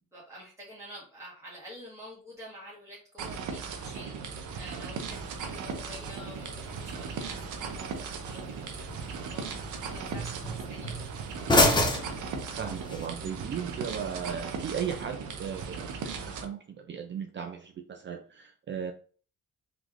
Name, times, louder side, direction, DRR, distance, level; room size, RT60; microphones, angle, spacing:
voice 1, 0.1-11.1, equal, 10° right, -6 dB, 1.3 m, -48 dB
sound 1, 3.2-16.4, right 5 dB, 80° right, 0.7 m, -38 dB
sound 2, 5.1-13.1, left 1 dB, 15° left, 0.7 m, -31 dB
voice 2, 12.6-18.9, right 7 dB, 40° right, 4 dB, 0.4 m, -36 dB
3.2 x 3.0 x 2.4 m, 0.41 s
cardioid pair, 90°, 30 cm